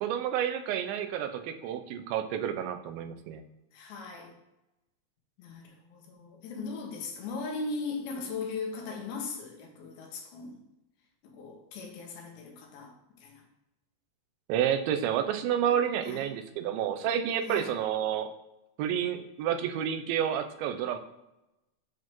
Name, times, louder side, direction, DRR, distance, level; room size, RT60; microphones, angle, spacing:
voice 1, 0.0-3.4 14.5-18.3 18.8-21.0, right 9 dB, 85° right, 8 dB, 2.4 m, -30 dB
voice 2, 3.7-4.3 5.4-10.6 11.2-12.9 13.2-13.4 16.1-16.3 17.5-17.7, left 4 dB, 85° left, 1 dB, 2.9 m, -38 dB
8.0 x 4.5 x 3.0 m, 0.94 s
omnidirectional pair, 4.2 m